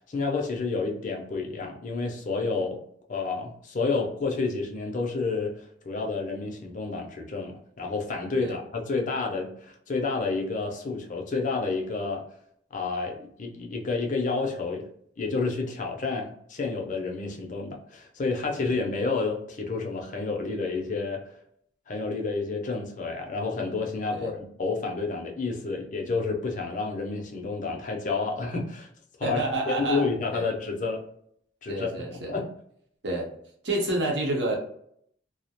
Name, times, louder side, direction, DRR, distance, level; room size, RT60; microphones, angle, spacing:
voice 1, 0.1-2.8 3.1-12.2 12.7-14.9 15.2-21.2 21.9-28.9 29.2-29.4 29.7-31.0 31.6-32.5, left 4 dB, 45° left, 1 dB, 0.5 m, -30 dB
voice 2, 29.2-30.5 31.7-32.4 33.0-33.3 33.6-34.6, right 2 dB, 70° right, 0 dB, 0.7 m, -29 dB
2.3 x 2.0 x 2.8 m, 0.68 s
head